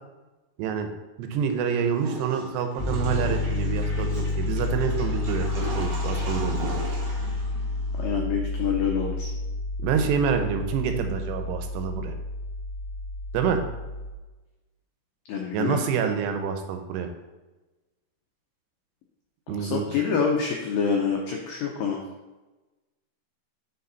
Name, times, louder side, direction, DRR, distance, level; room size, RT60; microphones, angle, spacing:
voice 1, 0.6-0.9 1.2-6.8 9.8-12.1 13.3-13.6 15.5-17.1 19.5-20.0, right 7 dB, 85° right, 6 dB, 2.9 m, -27 dB
Water / Toilet flush, 1.9-8.1, right 2 dB, 55° right, 1.4 m, -37 dB
Piano, 2.8-14.1, left 3 dB, 60° left, 0.5 m, -30 dB
voice 2, 8.0-9.3 15.3-15.8 19.5-22.0, left 6 dB, 85° left, 0 dB, 2.0 m, -26 dB
6.9 x 6.3 x 4.0 m, 1.1 s
omnidirectional pair, 4.9 m